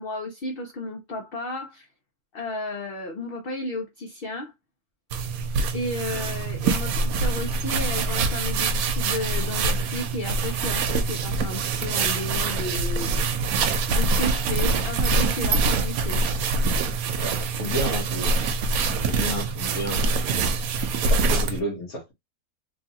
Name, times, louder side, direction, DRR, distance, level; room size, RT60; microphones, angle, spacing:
voice 1, 0.0-1.9 2.3-4.5 5.7-13.3 13.6-16.2, left 2 dB, 50° left, 0.8 m, -33 dB
sound 1, 5.1-21.6, right 4 dB, 85° right, 1.1 m, -24 dB
voice 2, 17.1-20.2 21.1-22.1, equal, 80° left, 1.5 m, -32 dB
3.2 x 2.4 x 2.7 m
omnidirectional pair, 1.5 m